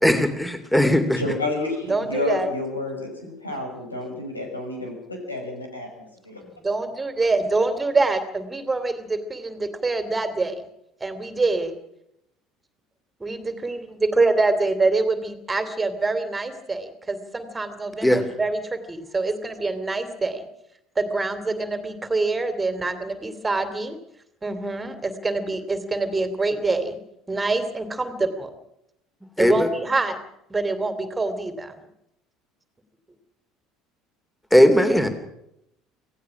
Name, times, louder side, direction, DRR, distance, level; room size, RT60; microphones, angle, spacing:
voice 1, 0.0-1.2 18.0-18.2 29.4-29.7 34.5-35.1, equal, 5° left, 8 dB, 3.0 m, -18 dB
voice 2, 1.1-6.4, left 2 dB, 85° left, 2 dB, 5.9 m, -30 dB
voice 3, 1.8-2.5 6.4-10.6 11.0-11.7 13.2-20.5 21.0-24.0 24.4-27.0 27.3-28.5 29.4-30.2 30.5-31.8, right 3 dB, 15° right, 9 dB, 2.9 m, -25 dB
26.5 x 17.5 x 6.1 m, 0.81 s
figure-of-eight pair, 60°, 0 cm